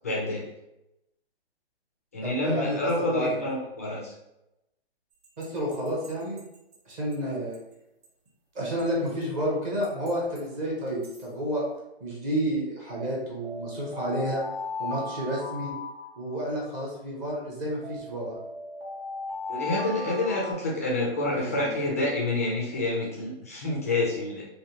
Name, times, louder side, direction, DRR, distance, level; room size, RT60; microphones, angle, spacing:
voice 1, 0.0-0.4 2.1-4.1 19.5-24.4, left 2 dB, 15° left, -4 dB, 0.3 m, -28 dB
voice 2, 2.2-3.4 5.4-6.4 6.9-7.6 8.5-11.6 12.0-14.4 14.8-15.7 16.2-18.4 21.3-21.9, equal, 20° right, -3 dB, 0.6 m, -30 dB
sound 1, 5.2-7.1 7.5-7.6 8.0-8.1 8.8-9.2 9.8-10.4 10.9-11.2 13.0-16.7 17.8-20.5, left 3 dB, 65° right, 1.2 m, -37 dB
3.3 x 2.5 x 2.8 m, 0.89 s
hypercardioid pair, 150°, 32 cm